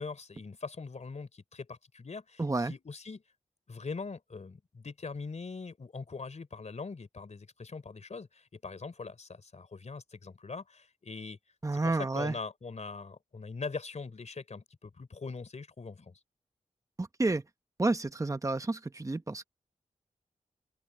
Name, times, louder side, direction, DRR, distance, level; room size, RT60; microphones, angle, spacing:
voice 1, 0.0-3.2 3.7-11.4 11.7-16.2, left 4 dB, 55° left, 3.7 m, -42 dB
voice 2, 2.4-2.7 11.6-12.3 17.0-17.4 17.8-19.4, right 2 dB, 25° right, 1.1 m, -30 dB
open air
wide cardioid pair, 70°, 14 cm